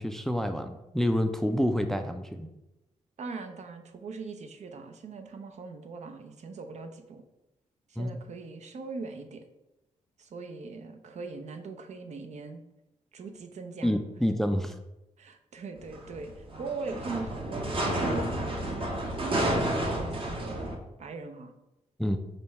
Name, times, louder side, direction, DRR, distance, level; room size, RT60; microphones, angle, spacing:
voice 1, 0.0-2.5 8.0-8.1 13.8-14.8 22.0-22.2, equal, 5° left, 7 dB, 0.3 m, -28 dB
voice 2, 3.2-7.2 7.9-9.4 10.2-12.6 13.1-13.9 15.2-18.2 18.9-21.5, right 4 dB, 60° right, 7 dB, 0.6 m, -41 dB
sound 1, 15.8-20.8, right 1 dB, 45° right, 0.9 m, -30 dB
5.2 x 2.3 x 4.1 m, 0.92 s
cardioid pair, 80°, 13 cm